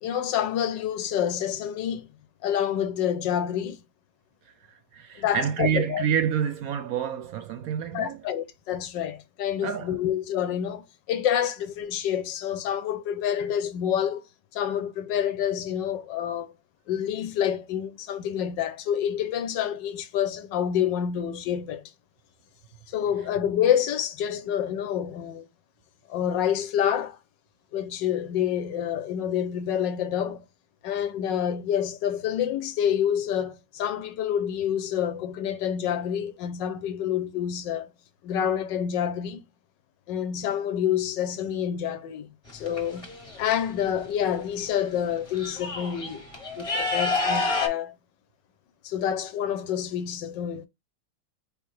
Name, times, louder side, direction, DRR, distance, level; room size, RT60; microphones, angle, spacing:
voice 1, 0.0-2.1 2.4-3.8 5.2-6.0 7.9-14.2 14.5-16.5 16.9-21.8 22.9-25.5 26.1-27.2 27.7-30.5 30.8-37.9 38.2-39.4 40.1-46.3 46.6-48.0 48.8-50.7, left 9 dB, 85° left, 1.4 m, -28 dB
voice 2, 4.9-8.2 9.6-10.0, right 8 dB, 70° right, 0.8 m, -28 dB
sound 1, 42.5-43.5 44.7-44.8 45.1-47.7, left 3 dB, 20° left, 1.0 m, -29 dB
4.9 x 3.4 x 3.1 m
omnidirectional pair, 1.9 m